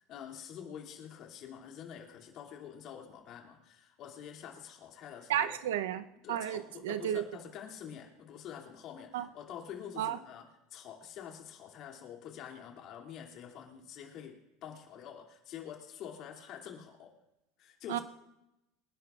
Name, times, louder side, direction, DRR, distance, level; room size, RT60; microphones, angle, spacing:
voice 1, 0.0-5.5 6.2-17.1 17.6-18.0, left 8 dB, 50° left, 1 dB, 2.8 m, -47 dB
voice 2, 5.3-7.2 9.1-9.2 10.0-10.2 17.9-18.0, right 11 dB, 85° right, 10 dB, 0.8 m, -32 dB
26.0 x 11.5 x 2.5 m, 0.89 s
supercardioid pair, 105°, 0 cm